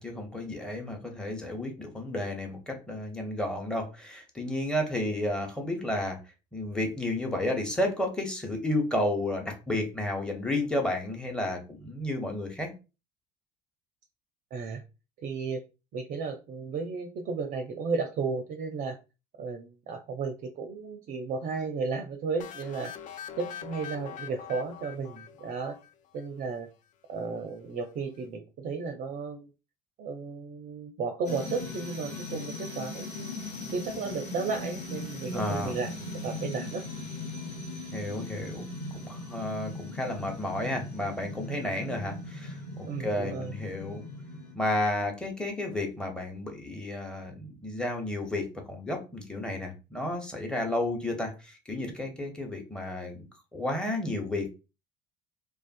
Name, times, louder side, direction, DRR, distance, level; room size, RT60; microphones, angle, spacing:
voice 1, 0.0-6.2 6.5-12.7 35.3-35.7 37.9-44.0 44.5-53.3 53.5-54.5, left 1 dB, 5° left, 1 dB, 0.9 m, -32 dB
voice 2, 14.5-14.8 15.2-15.6 15.9-19.0 19.4-22.9 23.4-25.8 26.1-26.7 27.1-29.5 30.0-33.3 33.7-35.9 36.2-36.8 42.9-43.5, right 4 dB, 40° right, 4 dB, 0.5 m, -34 dB
sound 1, 22.4-26.2, left 9 dB, 40° left, 0.4 m, -43 dB
sound 2, 31.2-44.5, left 2 dB, 85° left, 0.9 m, -39 dB
2.4 x 2.3 x 2.4 m, 0.29 s
hypercardioid pair, 65°, 21 cm